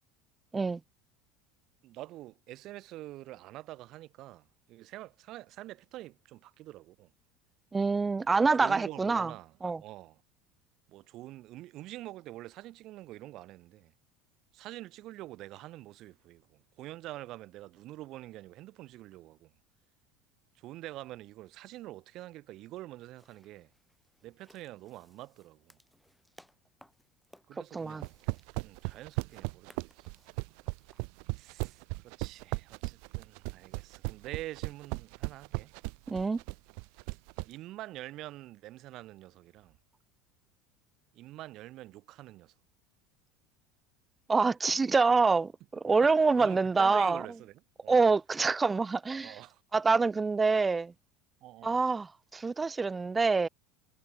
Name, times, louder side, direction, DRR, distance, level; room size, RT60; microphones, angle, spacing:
voice 1, 1.8-7.1 8.3-10.2 10.9-13.9 14.5-19.5 20.6-23.7 24.2-25.8 27.5-28.2 28.6-30.1 31.3-35.7 37.5-39.8 41.1-42.5 46.0-48.0 49.2-49.6 51.4-51.8, right 16 dB, 55° right, 1.9 m, -46 dB
voice 2, 7.7-9.3 9.6-9.8 27.7-28.0 36.1-36.4 44.3-47.2 47.9-49.4 49.7-50.9 51.6-53.5, right 4 dB, 15° right, 0.5 m, -26 dB
sound 1, 23.2-31.1, equal, ahead, 7.2 m, -63 dB
sound 2, 27.9-37.5, right 40 dB or more, 70° right, 1.2 m, -36 dB
supercardioid pair, 110°, 0 cm